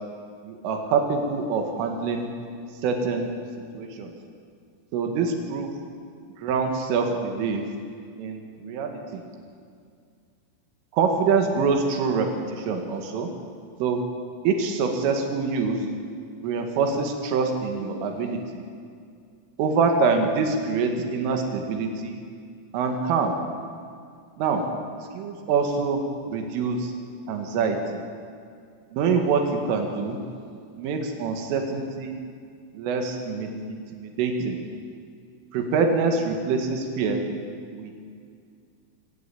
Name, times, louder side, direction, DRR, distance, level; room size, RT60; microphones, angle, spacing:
voice 1, 0.4-2.3 2.8-3.3 3.7-4.1 4.9-5.7 6.4-7.6 8.2-9.2 10.9-13.3 13.8-14.0 14.5-15.8 16.4-18.7 19.6-22.2 22.7-23.3 24.4-24.6 25.2-26.9 27.3-28.0 28.9-30.2 30.8-32.2 32.8-34.6 35.5-37.3 37.7-37.9, right 4 dB, 85° right, 4 dB, 4.5 m, -25 dB
24.0 x 17.0 x 8.6 m, 2.2 s
omnidirectional pair, 5.6 m